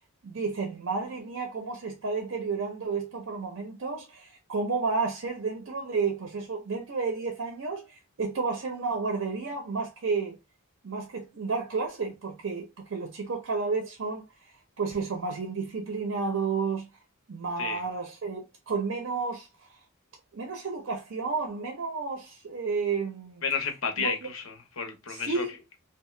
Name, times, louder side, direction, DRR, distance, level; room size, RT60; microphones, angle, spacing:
voice 1, 0.2-10.4 10.8-14.2 14.8-16.9 17.3-19.5 20.3-23.4 24.0-24.3 25.1-25.5, right 4 dB, 70° right, 0.5 m, -31 dB
voice 2, 23.4-25.4, left 5 dB, 75° left, 0.7 m, -31 dB
2.8 x 2.0 x 3.1 m
head